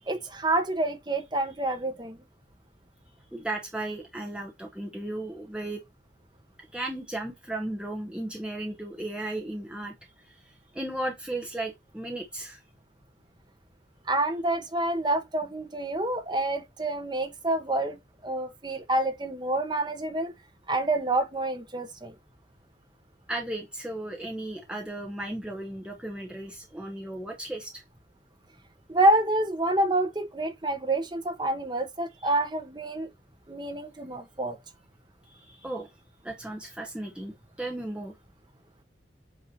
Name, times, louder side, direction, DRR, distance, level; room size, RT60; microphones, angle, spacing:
voice 1, 0.1-2.2 14.1-18.0 18.2-20.3 20.7-22.1 28.9-33.1 33.5-34.6, right 2 dB, 25° right, 1.0 m, -27 dB
voice 2, 3.3-5.8 6.7-9.9 10.2-10.3 10.7-12.6 23.3-27.8 32.2-32.3 35.3-35.9 36.2-38.1, right 1 dB, 5° right, 0.8 m, -35 dB
7.9 x 2.8 x 4.2 m
head